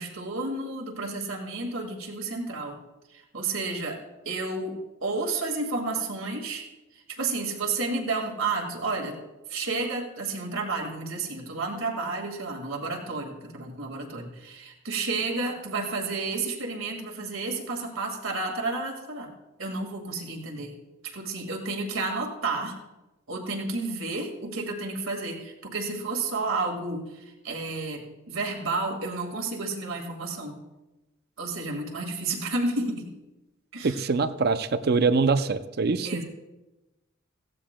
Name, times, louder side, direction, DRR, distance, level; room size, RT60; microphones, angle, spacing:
voice 1, 0.0-2.8 3.1-6.7 6.9-9.2 9.5-19.3 19.6-20.8 21.0-22.8 23.3-30.6 31.4-33.1 33.7-34.0 36.0-36.2, right 3 dB, 85° right, 2 dB, 2.0 m, -31 dB
voice 2, 33.8-36.2, right 4 dB, 50° right, 11 dB, 0.5 m, -24 dB
17.5 x 15.0 x 2.2 m, 1.1 s
head